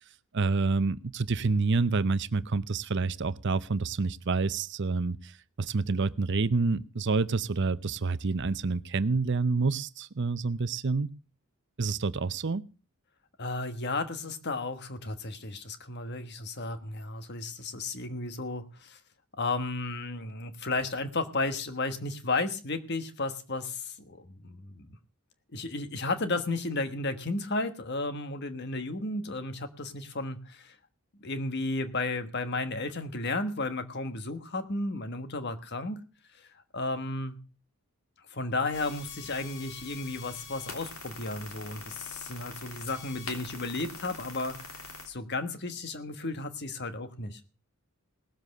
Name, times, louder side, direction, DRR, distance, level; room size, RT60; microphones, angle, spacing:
voice 1, 0.3-11.1 11.8-12.6, right 4 dB, 55° right, 15 dB, 0.7 m, -28 dB
voice 2, 13.4-19.0 19.4-25.0 25.5-30.8 31.2-36.0 36.4-36.5 36.7-37.4 38.3-47.4, left 2 dB, 50° left, 10 dB, 1.4 m, -33 dB
sound 1, 38.7-45.1, left 3 dB, 70° left, 3.2 m, -44 dB
18.5 x 7.5 x 6.5 m, 0.35 s
head